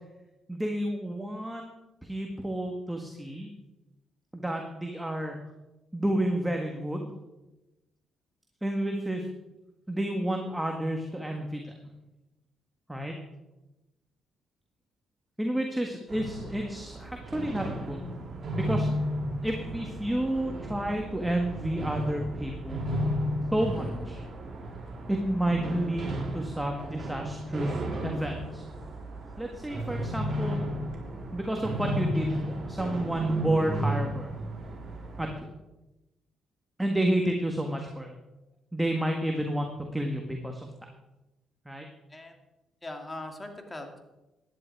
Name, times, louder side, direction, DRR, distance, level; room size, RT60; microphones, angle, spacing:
voice 1, 0.5-1.7 2.0-3.5 4.3-5.4 5.9-7.1 8.6-9.3 9.9-11.7 12.9-13.2 15.4-18.0 18.5-18.9 19.4-22.8 23.5-24.2 25.1-28.7 29.4-30.6 31.3-34.3 35.2-35.5 36.8-38.1 38.7-40.7 41.7-41.9, right 1 dB, 5° right, 2 dB, 1.7 m, -30 dB
sound 1, 16.1-35.3, equal, 45° right, 3.6 m, -33 dB
voice 2, 42.8-44.0, left 1 dB, 15° left, 4 dB, 2.6 m, -40 dB
15.5 x 11.0 x 4.7 m, 1.0 s
cardioid pair, 90°, 0 cm